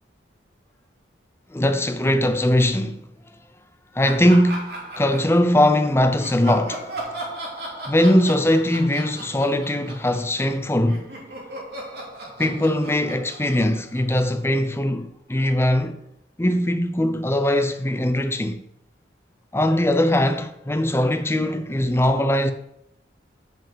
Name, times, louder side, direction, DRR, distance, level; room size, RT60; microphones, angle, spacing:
voice 1, 1.5-3.0 3.9-6.9 7.9-11.1 12.4-16.0 16.4-18.6 19.5-22.5, left 1 dB, 15° left, 0.6 m, -20 dB
Laughter, 4.0-5.8 6.2-10.6 10.9-14.4, right 1 dB, 55° right, 2.9 m, -36 dB
7.8 x 5.3 x 7.3 m
head